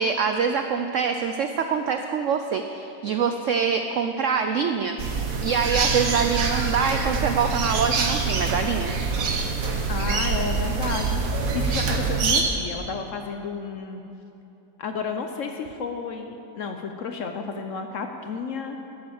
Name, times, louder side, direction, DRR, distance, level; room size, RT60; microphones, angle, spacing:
voice 1, 0.0-5.0 5.4-8.9, right 6 dB, 75° right, 6 dB, 0.7 m, -24 dB
sound 1, 5.0-12.4, right 4 dB, 55° right, 1.4 m, -25 dB
voice 2, 9.9-14.0 14.8-18.8, left 5 dB, 60° left, 5 dB, 0.9 m, -32 dB
12.5 x 7.7 x 7.0 m, 2.9 s
omnidirectional pair, 1.8 m